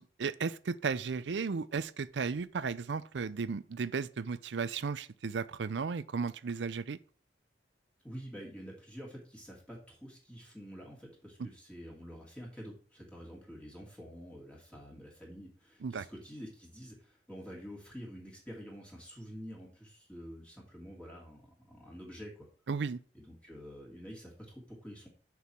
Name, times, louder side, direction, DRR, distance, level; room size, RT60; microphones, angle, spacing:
voice 1, 0.0-7.0 15.8-16.0 22.7-23.0, right 5 dB, 90° right, 0.5 m, -35 dB
voice 2, 8.0-22.5 23.1-25.1, equal, 5° left, 2.4 m, -48 dB
6.8 x 4.8 x 5.9 m
head